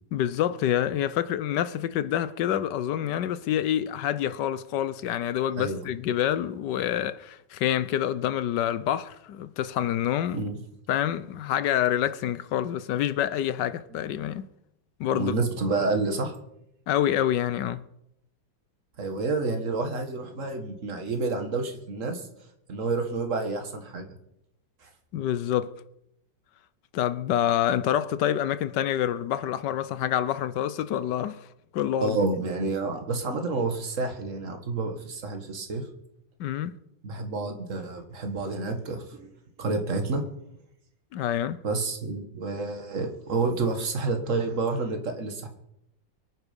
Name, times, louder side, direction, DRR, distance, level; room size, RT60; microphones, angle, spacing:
voice 1, 0.1-10.5 10.9-14.5 15.0-15.3 16.9-17.8 25.1-25.7 26.9-31.4 31.7-32.2 36.4-36.8 41.1-41.6, left 11 dB, 70° left, 1.3 m, -27 dB
voice 2, 15.1-16.4 19.0-22.3 22.7-24.1 24.8-24.9 32.0-35.9 37.0-39.3 39.6-40.2 41.6-45.5, right 3 dB, 40° right, 2.0 m, -29 dB
23.5 x 9.6 x 5.3 m
omnidirectional pair, 2.0 m